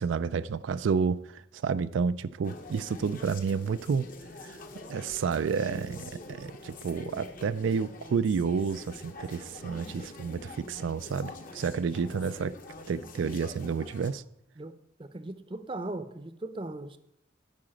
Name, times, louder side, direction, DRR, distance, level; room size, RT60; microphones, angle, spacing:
voice 1, 0.0-4.1 4.5-4.6 4.9-12.6 12.9-14.2, right 5 dB, 85° right, 0.4 m, -30 dB
sound 1, 2.4-14.1, left 2 dB, 45° left, 0.9 m, -45 dB
voice 2, 15.0-17.0, right 2 dB, 25° right, 0.6 m, -38 dB
8.7 x 5.0 x 7.6 m
head